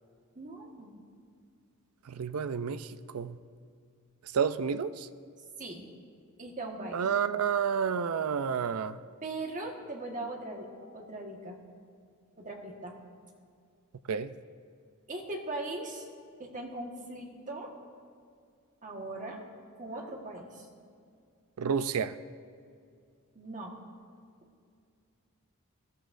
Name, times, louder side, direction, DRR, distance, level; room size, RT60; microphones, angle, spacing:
voice 1, 0.3-1.0 5.6-5.8 6.4-7.0 9.2-11.6 12.4-13.0 15.1-16.1 16.4-17.7 18.8-19.4 19.8-20.7 23.3-23.7, right 2 dB, 35° right, 1 dB, 1.5 m, -40 dB
voice 2, 2.1-2.9 3.1-3.3 4.3-5.1 6.9-9.0 14.1-14.3 21.6-22.1, right 7 dB, 85° right, 13 dB, 0.5 m, -30 dB
20.0 x 13.5 x 2.6 m, 2.3 s
head